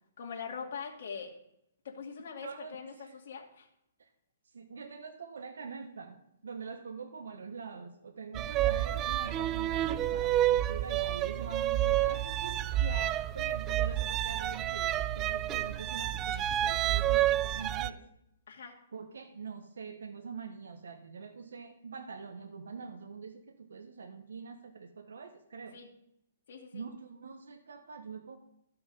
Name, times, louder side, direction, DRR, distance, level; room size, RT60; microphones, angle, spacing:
voice 1, 0.2-1.3 1.8-3.7 12.8-13.2 18.5-18.7 25.7-25.9 26.5-26.8, left 6 dB, 60° left, 1 dB, 2.2 m, -42 dB
voice 2, 2.4-3.1 4.0-4.1 4.5-12.6 13.0-18.0 18.9-25.8 26.7-28.4, right 5 dB, 85° right, 5 dB, 1.1 m, -44 dB
sound 1, 8.4-17.9, right 13 dB, 20° right, 0.3 m, -29 dB
13.0 x 5.9 x 5.2 m, 0.79 s
hypercardioid pair, 160°, 0 cm